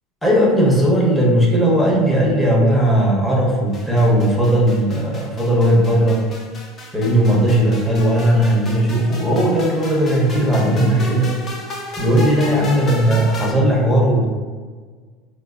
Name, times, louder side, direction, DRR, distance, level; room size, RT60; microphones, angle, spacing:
voice 1, 0.2-6.2 6.9-11.4 12.0-14.3, right 1 dB, 5° left, -4 dB, 0.8 m, -17 dB
sound 1, 3.7-13.5, left 2 dB, 35° left, 0.6 m, -34 dB
3.7 x 2.1 x 2.4 m, 1.5 s
supercardioid pair, 110°, 0 cm